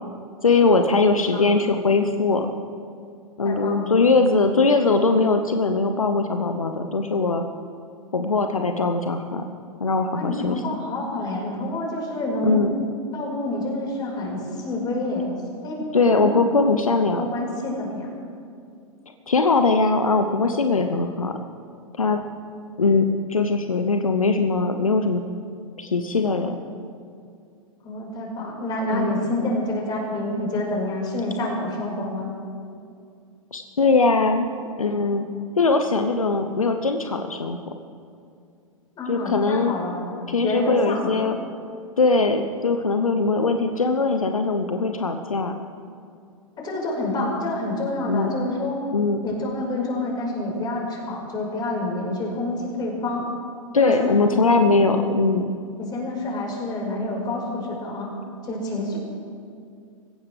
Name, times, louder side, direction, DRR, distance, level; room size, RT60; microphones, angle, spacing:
voice 1, 0.4-2.5 3.4-7.4 8.1-9.4 9.8-10.6 12.4-12.7 15.9-17.2 19.3-21.4 22.0-22.2 22.8-25.2 25.8-26.5 28.9-29.1 33.5-34.5 34.8-35.3 35.6-37.6 39.1-39.7 40.3-41.4 42.0-45.5 48.1-48.3 48.9-49.2 53.7-55.5, left 3 dB, 80° left, 6 dB, 0.9 m, -21 dB
voice 2, 1.3-1.7 3.4-4.0 10.1-12.6 13.1-15.3 15.6-15.8 16.1-16.4 16.9-18.1 27.8-32.3 39.0-40.2 40.4-41.2 46.6-48.8 49.2-53.2 53.8-54.3 55.8-58.1 58.4-59.0, left 2 dB, 25° left, -1 dB, 5.1 m, -28 dB
26.0 x 15.5 x 3.4 m, 2.4 s
figure-of-eight pair, 105°, 18 cm